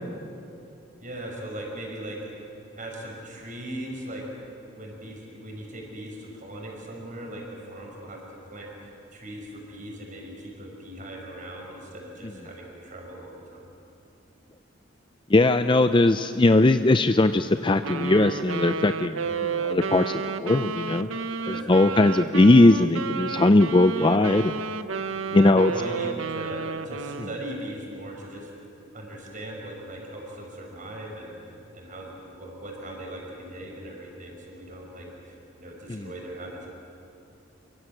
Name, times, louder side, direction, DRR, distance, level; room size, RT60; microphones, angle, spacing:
voice 1, 1.0-2.3 2.8-4.2 4.7-8.7 9.1-13.7 19.1-19.4 21.4-22.1 24.0-24.2 25.3-28.5 28.9-36.7, right 1 dB, 40° right, -1 dB, 6.0 m, -39 dB
voice 2, 15.3-21.1 21.7-24.5 25.3-25.7 35.9-36.1, left 2 dB, 25° left, 10 dB, 0.5 m, -19 dB
Wind instrument woodwind instrument, 17.8-27.4, right 5 dB, 80° right, 0.9 m, -32 dB
28.0 x 24.0 x 7.9 m, 2.8 s
head